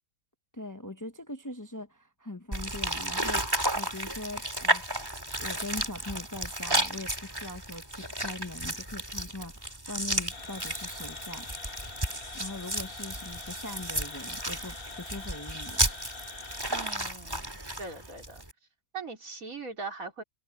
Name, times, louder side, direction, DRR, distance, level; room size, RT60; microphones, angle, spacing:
voice 1, 0.5-4.8 5.4-11.5 12.3-15.9, left 2 dB, 15° left, 0.8 m, -41 dB
sound 1, 2.5-18.5, right 1 dB, 15° right, 2.7 m, -33 dB
sound 2, 10.3-17.0, left 3 dB, 40° left, 2.0 m, -44 dB
voice 2, 16.7-17.5 17.8-18.4 18.9-20.2, right 4 dB, 75° right, 4.2 m, -40 dB
omnidirectional pair, 1.5 m